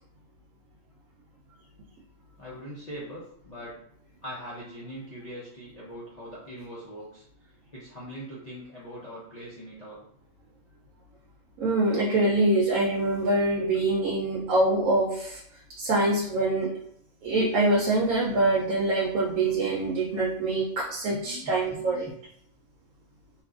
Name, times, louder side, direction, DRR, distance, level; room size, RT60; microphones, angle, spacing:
voice 1, 2.4-3.8 4.2-10.0 21.1-22.1, equal, 40° left, -9 dB, 0.6 m, -42 dB
voice 2, 11.6-15.4 15.8-16.8 17.2-22.1, right 2 dB, 80° right, -3 dB, 1.0 m, -24 dB
2.8 x 2.4 x 2.4 m, 0.68 s
omnidirectional pair, 1.4 m